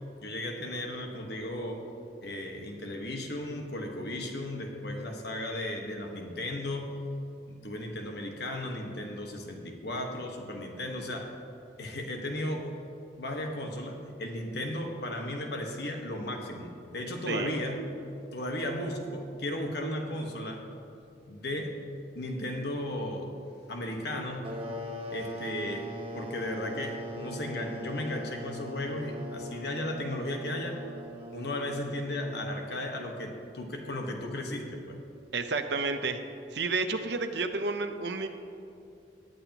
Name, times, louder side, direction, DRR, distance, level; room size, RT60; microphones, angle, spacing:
voice 1, 0.2-1.9 2.2-7.0 7.5-11.4 11.8-12.8 13.2-17.8 18.3-20.7 21.3-21.9 22.1-23.4 23.7-24.5 25.1-30.8 31.3-35.0, left 1 dB, 65° left, 2 dB, 1.3 m, -35 dB
sound 1, 24.4-32.8, equal, 30° right, 1.0 m, -41 dB
voice 2, 35.3-36.2 36.5-38.3, right 3 dB, 70° right, 8 dB, 0.7 m, -30 dB
19.0 x 8.4 x 3.0 m, 2.6 s
head